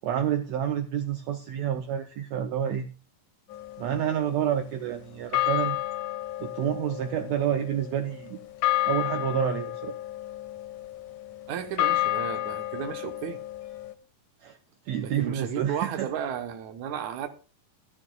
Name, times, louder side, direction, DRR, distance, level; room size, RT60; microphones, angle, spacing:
voice 1, 0.0-2.9 3.8-5.8 6.4-8.4 8.8-9.9 14.4-14.6 14.9-16.1, right 9 dB, 85° right, 1.6 m, -29 dB
sound 1, 3.5-4.8 5.3-13.9, left 15 dB, 75° left, 2.1 m, -31 dB
voice 2, 11.5-13.4 15.0-17.3, right 9 dB, 65° right, 2.3 m, -33 dB
15.0 x 12.0 x 2.4 m
omnidirectional pair, 3.9 m